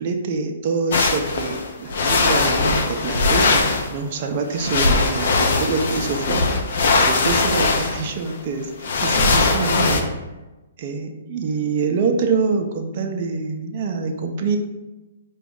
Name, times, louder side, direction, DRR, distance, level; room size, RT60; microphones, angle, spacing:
voice 1, 0.0-6.6 7.1-10.1 10.8-14.6, right 4 dB, 45° right, 4 dB, 0.5 m, -25 dB
sound 1, 0.9-3.9 4.5-10.0, left 3 dB, 60° left, 0.6 m, -20 dB
4.9 x 2.3 x 3.6 m, 1.1 s
hypercardioid pair, 130°, 0 cm